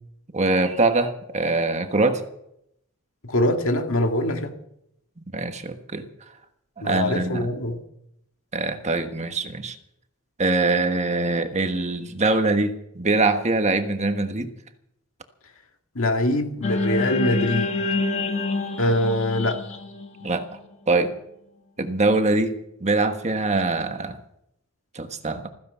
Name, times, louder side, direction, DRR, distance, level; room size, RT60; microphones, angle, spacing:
voice 1, 0.3-2.2 5.3-6.0 6.8-7.5 8.5-9.7 10.4-14.5 20.2-20.5 20.9-21.1 21.8-22.5 22.8-24.2 24.9-25.5, right 3 dB, 30° right, 7 dB, 1.4 m, -23 dB
voice 2, 3.2-4.5 6.8-7.8 16.0-17.7 18.8-19.6, left 1 dB, 65° left, 4 dB, 2.2 m, -23 dB
sound 1, 16.6-21.0, left 3 dB, 30° left, 2.0 m, -27 dB
15.5 x 15.0 x 5.7 m, 0.76 s
head